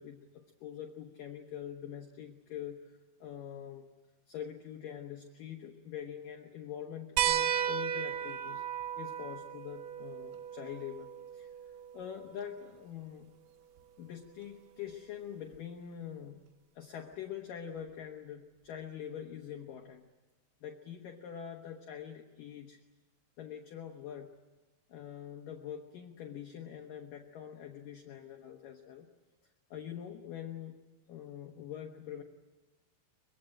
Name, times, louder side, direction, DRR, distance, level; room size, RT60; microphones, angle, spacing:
voice 1, 0.0-3.9 4.3-8.7 9.0-11.5 11.9-13.3 14.0-16.4 16.8-20.1 20.6-22.8 23.4-24.3 24.9-29.1 29.7-30.8 31.1-32.2, left 9 dB, 75° left, 4 dB, 2.0 m, -44 dB
sound 1, 7.2-12.2 13.8-13.9 15.5-15.6, right 10 dB, 85° right, 3.8 m, -35 dB
23.5 x 23.5 x 8.9 m, 1.1 s
omnidirectional pair, 5.7 m